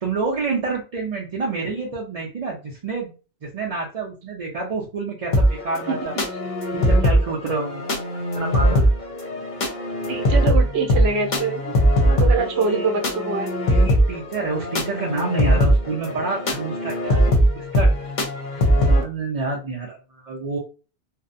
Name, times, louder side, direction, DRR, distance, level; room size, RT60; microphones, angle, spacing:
voice 1, 0.0-3.1 3.4-6.1 6.7-7.8 8.4-8.9 12.1-12.9 13.7-17.2 17.6-17.9 18.5-20.6, right 4 dB, 50° right, -4 dB, 0.5 m, -28 dB
sound 1, 5.3-19.0, equal, 50° left, 0.7 m, -20 dB
voice 2, 10.1-11.7 12.0-13.5, right 4 dB, 70° right, 3 dB, 0.9 m, -24 dB
2.6 x 2.1 x 2.5 m, 0.33 s
omnidirectional pair, 1.2 m